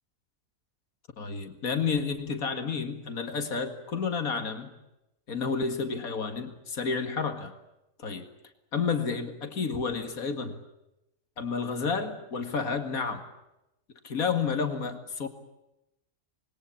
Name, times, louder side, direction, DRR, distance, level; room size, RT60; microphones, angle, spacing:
voice 1, 1.2-4.7 5.3-7.5 8.0-8.3 8.7-10.6 11.4-13.2 14.0-15.3, left 5 dB, 85° left, 7 dB, 2.5 m, -30 dB
27.0 x 21.0 x 8.6 m, 0.92 s
omnidirectional pair, 1.5 m